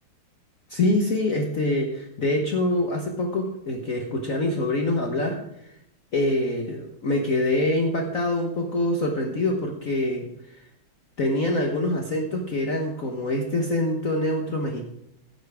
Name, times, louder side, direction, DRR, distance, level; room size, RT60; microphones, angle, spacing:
voice 1, 0.7-5.8 6.1-10.7 11.2-14.8, left 1 dB, 45° left, 1 dB, 1.5 m, -25 dB
16.5 x 9.8 x 3.6 m, 0.80 s
omnidirectional pair, 2.2 m